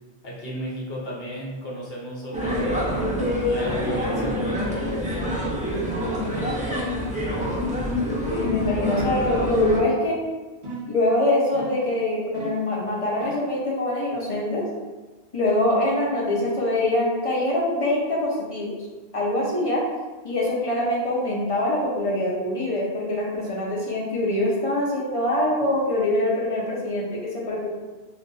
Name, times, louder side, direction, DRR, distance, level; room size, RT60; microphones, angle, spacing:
voice 1, 0.2-2.8 3.5-5.0 6.3-6.6, equal, 60° left, -3 dB, 0.9 m, -34 dB
sound 1, 2.3-9.8, equal, 10° right, 0.3 m, -26 dB
sound 2, 6.7-7.0 7.4-7.8 8.2-8.4 8.9-9.2 10.6-11.0 11.5-11.9 12.3-12.7 13.2-13.5, right 1 dB, 45° right, 0.7 m, -37 dB
voice 2, 8.3-10.2 10.9-14.6 15.3-18.7 19.1-19.8 20.2-27.7, left 1 dB, 35° left, -4 dB, 0.6 m, -24 dB
2.5 x 2.4 x 3.7 m, 1.3 s
omnidirectional pair, 1.2 m